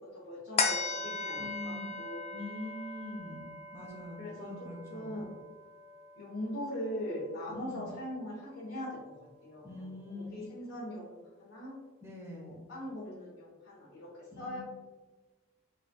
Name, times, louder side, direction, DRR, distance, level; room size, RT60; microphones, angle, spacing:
voice 1, 0.1-1.5 2.0-2.2 4.2-4.5 4.9-5.3 6.2-9.1 9.4-9.8 10.1-11.7 12.3-14.1 14.4-14.6, left 1 dB, 75° left, -7 dB, 1.1 m, -40 dB
sound 1, 0.6-7.3 7.8-7.9, left 4 dB, 30° left, 0.4 m, -38 dB
voice 2, 1.4-1.9 2.3-5.3 7.5-8.0 9.6-10.4 12.0-12.5 14.3-14.6, left 1 dB, 10° right, -2 dB, 0.9 m, -44 dB
5.6 x 3.3 x 2.2 m, 1.2 s
head